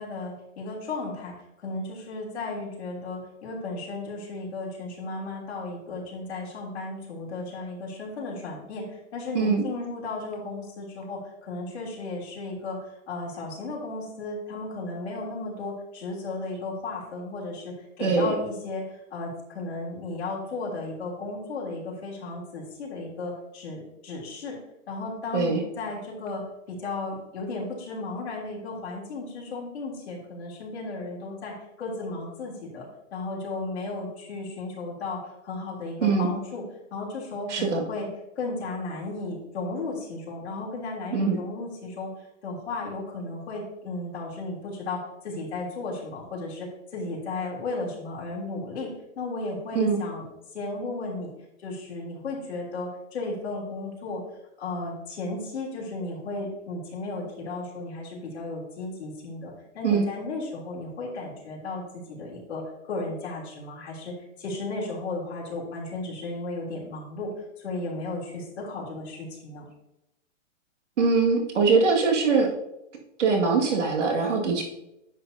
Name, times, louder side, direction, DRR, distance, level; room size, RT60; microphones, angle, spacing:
voice 1, 0.0-12.8 13.1-18.8 19.1-24.6 24.9-26.4 26.7-32.9 33.1-36.6 36.9-38.1 38.4-42.1 42.4-48.9 49.2-50.3 50.5-51.3 51.6-54.2 54.6-67.3 67.6-69.7, left 2 dB, 60° left, -4 dB, 3.2 m, -34 dB
voice 2, 18.0-18.3 25.3-25.6 36.0-36.3 37.5-37.8 41.1-41.4 49.7-50.0 59.8-60.1 71.0-72.5 73.2-74.6, right 4 dB, 70° right, 0 dB, 2.1 m, -22 dB
10.0 x 6.7 x 2.8 m, 0.86 s
hypercardioid pair, 180°, 37 cm